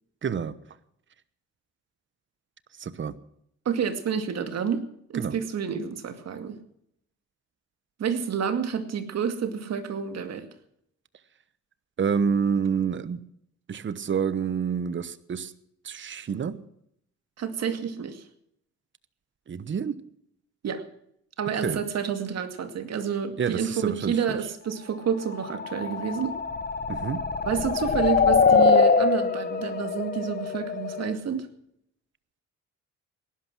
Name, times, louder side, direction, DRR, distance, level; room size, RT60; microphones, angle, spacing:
voice 1, 0.2-0.5 2.8-3.1 5.1-5.4 12.0-13.2 13.7-15.5 15.8-16.6 19.5-20.0 21.6-21.8 23.4-24.4 26.9-27.3, right 6 dB, 40° right, 15 dB, 1.1 m, -28 dB
voice 2, 3.7-4.8 5.1-6.6 8.0-10.5 17.4-18.2 20.6-20.8 21.4-26.4 27.4-31.5, right 7 dB, 60° right, 8 dB, 2.2 m, -29 dB
sound 1, 25.3-31.1, left 5 dB, 30° left, 1.4 m, -23 dB
18.0 x 11.5 x 6.1 m, 0.72 s
cardioid pair, 90°, 30 cm